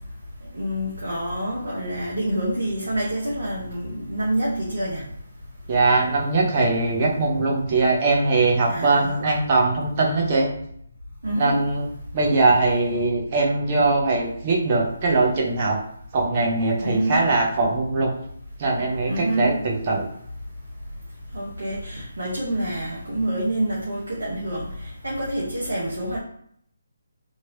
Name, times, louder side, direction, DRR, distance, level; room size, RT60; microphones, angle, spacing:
voice 1, 0.5-5.0 8.7-9.1 11.2-11.6 16.8-17.2 19.1-19.6 21.3-24.7 25.0-26.2, right 1 dB, 70° right, -4 dB, 0.9 m, -27 dB
voice 2, 5.7-10.5 11.4-11.8 12.1-15.8 16.1-18.1 18.6-20.1, right 3 dB, 35° right, -1 dB, 0.9 m, -21 dB
3.0 x 2.9 x 2.7 m, 0.68 s
figure-of-eight pair, 145°, 0 cm